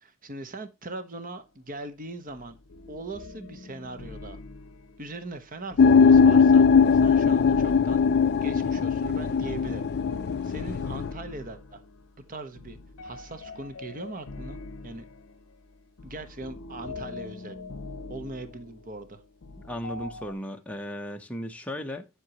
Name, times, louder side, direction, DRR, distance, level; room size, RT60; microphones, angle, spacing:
voice 1, 0.0-2.6 2.9-4.4 5.0-6.7 7.0-8.0 8.4-9.9 10.1-11.8 12.3-12.8 13.0-15.0 16.0-17.6 18.1-19.2, right 2 dB, 40° right, 1.0 m, -40 dB
sound 1, 2.3-20.3, left 3 dB, 65° left, 0.7 m, -43 dB
sound 2, 5.8-11.1, left 5 dB, 50° left, 0.3 m, -20 dB
voice 2, 19.6-22.1, equal, 5° left, 0.8 m, -36 dB
8.3 x 8.0 x 2.9 m
head